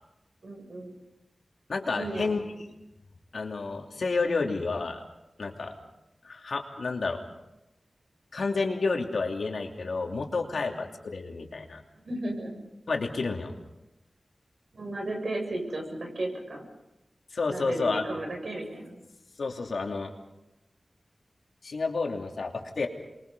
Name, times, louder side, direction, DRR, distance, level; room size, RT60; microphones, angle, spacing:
voice 1, 0.4-0.9 1.9-2.3 12.0-12.6 14.7-16.6 17.5-19.0, right 1 dB, 75° right, 2 dB, 6.9 m, -34 dB
voice 2, 1.7-2.7 3.3-5.0 5.4-5.7 6.2-7.2 8.3-11.8 12.9-13.5 17.3-18.1 19.4-20.1 21.6-22.9, left 4 dB, 80° left, 2 dB, 2.9 m, -30 dB
28.0 x 23.0 x 5.5 m, 0.92 s
cardioid pair, 50°, 0 cm